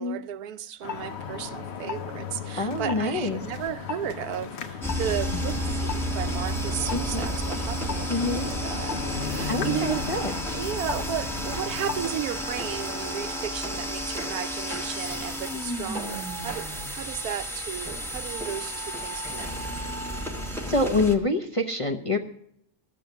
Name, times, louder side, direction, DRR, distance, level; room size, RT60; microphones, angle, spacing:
voice 1, 0.0-10.0 10.5-19.5, right 10 dB, 90° right, 1.2 m, -34 dB
sound 1, 0.8-12.2, left 6 dB, 55° left, 1.0 m, -36 dB
sound 2, 1.6-1.7 2.0-6.7, left 6 dB, 75° left, 1.4 m, -46 dB
voice 2, 2.6-3.4 6.9-7.2 8.1-8.5 9.5-10.3 20.7-22.2, left 2 dB, 35° left, 0.5 m, -26 dB
sound 3, 4.8-21.2, equal, ahead, 1.1 m, -32 dB
13.5 x 7.0 x 7.9 m
omnidirectional pair, 1.5 m